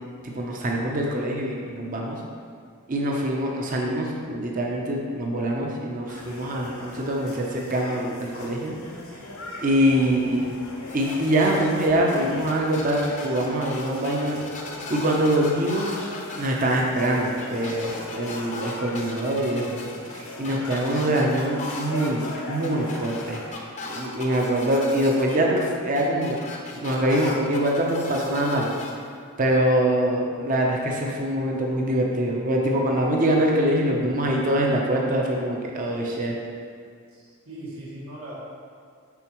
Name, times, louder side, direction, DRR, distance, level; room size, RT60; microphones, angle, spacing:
voice 1, 0.3-2.2 2.9-8.8 9.6-10.4 10.9-14.4 14.9-16.0 16.4-19.8 20.1-23.4 23.9-26.4 26.7-28.7 29.4-36.4, right 1 dB, 35° right, -1 dB, 0.6 m, -24 dB
sound 1, 6.1-23.5, left 1 dB, 80° left, 1.0 m, -40 dB
voice 2, 10.0-10.4 37.1-38.3, right 1 dB, 80° right, -7 dB, 1.6 m, -40 dB
sound 2, 10.9-28.9, left 3 dB, 35° left, 0.6 m, -38 dB
7.0 x 5.3 x 3.0 m, 2.1 s
head